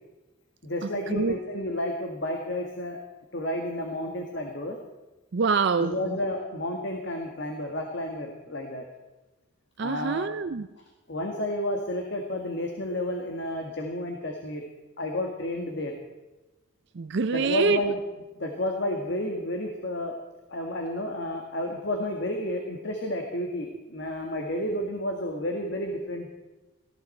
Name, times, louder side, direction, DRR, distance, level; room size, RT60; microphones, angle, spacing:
voice 1, 0.6-3.0 3.3-4.8 5.8-8.9 9.8-10.3 11.1-14.6 15.0-16.0 17.3-18.0 18.4-20.1 20.5-26.3, left 1 dB, 55° left, 2 dB, 1.7 m, -31 dB
voice 2, 5.3-6.0 9.8-10.7 17.0-17.8, right 4 dB, 55° right, 11 dB, 0.5 m, -25 dB
18.5 x 14.5 x 4.4 m, 1.1 s
head